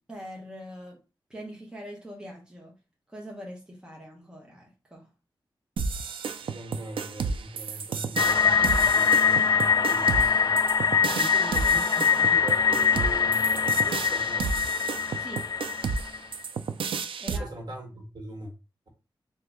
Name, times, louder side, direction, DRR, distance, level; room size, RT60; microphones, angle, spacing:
voice 1, 0.1-1.0 1.3-2.7 3.1-5.1 15.1-15.5 17.2-17.5, equal, 10° right, 1.0 m, -43 dB
sound 1, 5.8-17.4, right 5 dB, 90° right, 0.4 m, -32 dB
voice 2, 6.4-10.6 11.0-13.4 13.8-14.5 17.3-18.5, right 2 dB, 55° right, 1.5 m, -41 dB
sound 2, 8.2-16.2, left 6 dB, 45° left, 0.3 m, -23 dB
3.7 x 2.7 x 3.5 m
wide cardioid pair, 140°, 9 cm